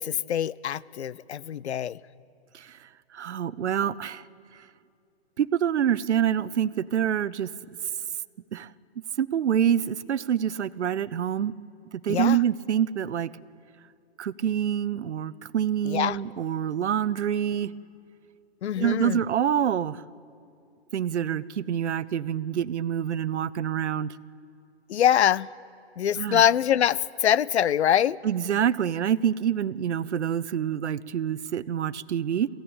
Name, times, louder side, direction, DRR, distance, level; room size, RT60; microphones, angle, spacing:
voice 1, 0.0-2.0 12.1-12.4 15.8-16.2 18.6-19.2 24.9-25.5 26.0-28.2, left 10 dB, 75° left, 22 dB, 0.6 m, -24 dB
voice 2, 3.1-4.2 5.4-7.5 8.5-8.7 9.2-11.5 12.0-13.3 14.2-17.7 18.8-20.0 20.9-24.1 26.2-26.4 28.2-32.5, right 9 dB, 90° right, 18 dB, 0.7 m, -26 dB
22.0 x 16.0 x 8.7 m, 2.5 s
hypercardioid pair, 170°, 33 cm